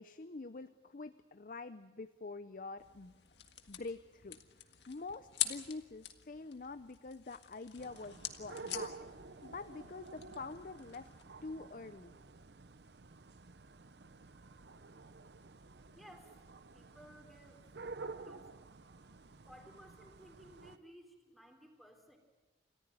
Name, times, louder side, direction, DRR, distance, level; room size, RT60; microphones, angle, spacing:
voice 1, 0.0-3.1 3.7-4.4 4.9-9.1 9.4-11.1 11.4-12.2, left 3 dB, 50° left, 12 dB, 0.6 m, -46 dB
sound 1, 2.8-11.2, left 11 dB, 80° left, 1.7 m, -45 dB
sound 2, 7.8-20.8, right 3 dB, 70° right, 0.8 m, -51 dB
voice 2, 16.0-16.3 16.7-17.6 18.0-18.5 19.5-22.2, equal, ahead, 3 dB, 3.4 m, -58 dB
28.0 x 15.0 x 9.1 m, 1.3 s
head